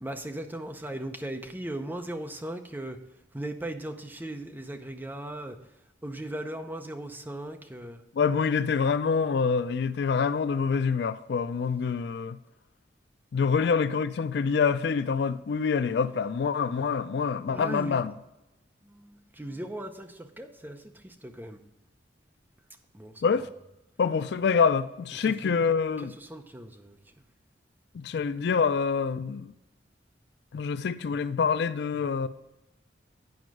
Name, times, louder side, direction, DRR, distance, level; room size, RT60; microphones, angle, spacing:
voice 1, 0.0-3.0 3.3-5.6 6.0-8.0 17.5-18.0 18.9-20.8 21.0-21.6 22.9-23.3 25.3-25.5 26.2-27.0, right 1 dB, 10° right, 0.7 m, -38 dB
voice 2, 8.2-12.4 13.3-18.1 23.2-23.5 24.0-26.1 27.9-29.5 30.5-32.3, left 5 dB, 65° left, 0.4 m, -26 dB
9.4 x 5.2 x 4.8 m
head